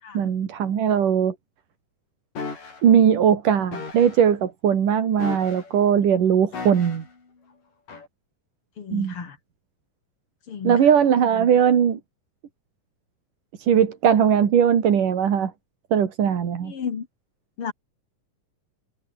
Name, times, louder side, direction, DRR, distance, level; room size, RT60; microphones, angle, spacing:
voice 1, 0.1-1.4 2.8-7.1 8.9-9.1 10.6-12.0 13.6-15.5 15.9-16.7, right 8 dB, 75° right, 4.2 m, -19 dB
sound 1, 2.4-2.8 3.7-4.2 5.2-5.8 6.5-7.1 7.9-8.1, left 4 dB, 85° left, 7.8 m, -35 dB
voice 2, 8.8-9.4 10.5-10.8 16.6-17.1 17.6-17.7, left 7 dB, 45° left, 2.6 m, -32 dB
omnidirectional pair, 3.7 m